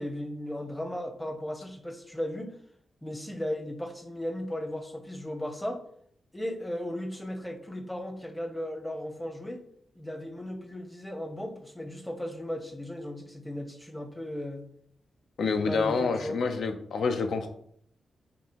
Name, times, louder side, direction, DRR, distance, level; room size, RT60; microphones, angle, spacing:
voice 1, 0.0-2.5 3.0-5.8 6.3-9.6 9.9-14.7 15.5-16.4, left 1 dB, 10° left, 5 dB, 0.7 m, -36 dB
voice 2, 15.4-17.5, left 4 dB, 80° left, 6 dB, 0.6 m, -27 dB
5.2 x 2.7 x 3.0 m, 0.64 s
cardioid pair, 85°, 0 cm